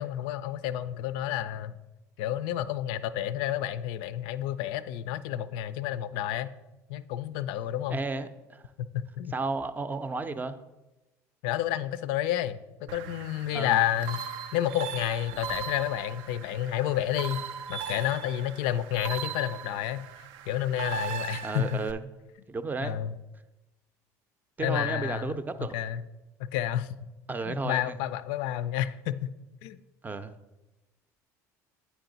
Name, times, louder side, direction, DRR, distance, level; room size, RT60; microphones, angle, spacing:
voice 1, 0.0-1.8 2.2-6.5 6.9-8.0 8.8-9.3 11.4-14.3 14.5-17.4 17.7-20.1 20.5-21.8 22.8-23.2 24.6-26.0 26.4-26.9 27.5-29.3 29.6-29.8, left 12 dB, 70° left, 13 dB, 0.4 m, -30 dB
voice 2, 7.9-8.6 9.3-10.6 13.5-13.8 21.4-22.0 22.5-23.0 24.6-25.7 27.3-28.0 30.0-30.3, right 3 dB, 20° right, 11 dB, 0.5 m, -33 dB
sound 1, 12.9-21.9, right 8 dB, 70° right, 0.4 m, -39 dB
9.0 x 4.6 x 3.9 m, 1.0 s
hypercardioid pair, 75°, 9 cm